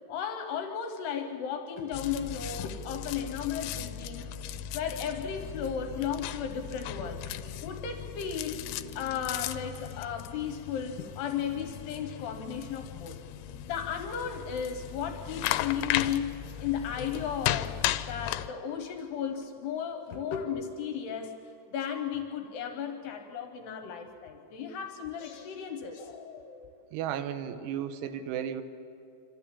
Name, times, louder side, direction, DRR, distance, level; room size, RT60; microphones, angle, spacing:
voice 1, 0.1-4.3 4.7-8.6 9.0-13.2 13.6-17.8 18.1-21.3 21.7-26.7, left 8 dB, 75° left, 6 dB, 2.9 m, -35 dB
sound 1, 1.9-18.5, left 12 dB, 90° left, 2.9 m, -36 dB
voice 2, 26.9-28.6, right 9 dB, 75° right, 9 dB, 2.8 m, -34 dB
26.5 x 13.0 x 8.4 m, 2.6 s
omnidirectional pair, 5.0 m